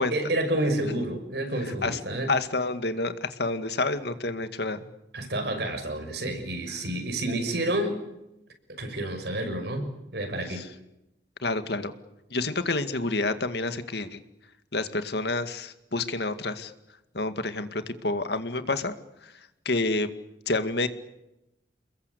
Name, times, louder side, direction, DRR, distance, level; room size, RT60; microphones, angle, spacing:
voice 1, 0.0-2.4 5.1-8.0 8.7-10.6, right 1 dB, 65° right, 6 dB, 6.3 m, -29 dB
voice 2, 2.3-4.9 10.5-10.6 11.4-11.9 12.3-14.2 14.7-16.7 17.1-18.9 19.7-20.1 20.5-20.9, left 2 dB, 60° left, 10 dB, 2.1 m, -28 dB
29.5 x 21.5 x 8.4 m, 0.89 s
head